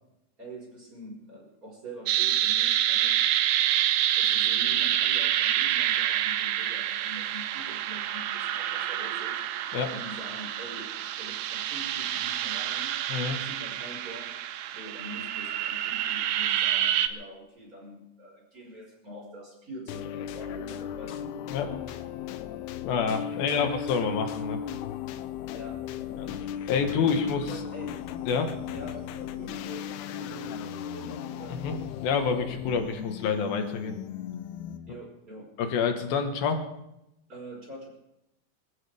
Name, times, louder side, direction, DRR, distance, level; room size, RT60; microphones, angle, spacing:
voice 1, 0.4-3.2 4.2-9.4 9.9-13.0 13.3-14.3 14.7-21.3 23.4-23.8 25.5-26.4 27.0-28.0 28.7-31.6 34.9-35.5 37.3-37.9, right 1 dB, 20° right, -2 dB, 5.4 m, -44 dB
sound 1, 2.1-17.1, right 11 dB, 80° right, 2.5 m, -27 dB
sound 2, 19.9-35.0, left 10 dB, 90° left, 2.7 m, -36 dB
voice 2, 22.8-24.6 26.2-26.3 26.7-27.5 28.3-28.5 31.5-31.8 32.0-34.0 35.6-36.7, left 5 dB, 70° left, 5 dB, 3.2 m, -27 dB
25.5 x 15.0 x 3.5 m, 0.86 s
omnidirectional pair, 4.4 m